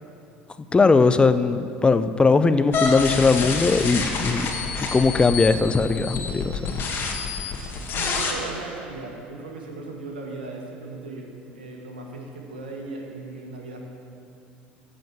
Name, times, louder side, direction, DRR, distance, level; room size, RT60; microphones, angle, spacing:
voice 1, 0.7-4.5 4.9-6.6, left 4 dB, 20° left, 11 dB, 0.6 m, -19 dB
sound 1, 2.7-8.3, left 4 dB, 45° left, 2.0 m, -28 dB
voice 2, 7.9-13.8, right 3 dB, 85° right, 1 dB, 1.6 m, -37 dB
14.5 x 5.2 x 7.3 m, 2.5 s
hypercardioid pair, 70°, 5 cm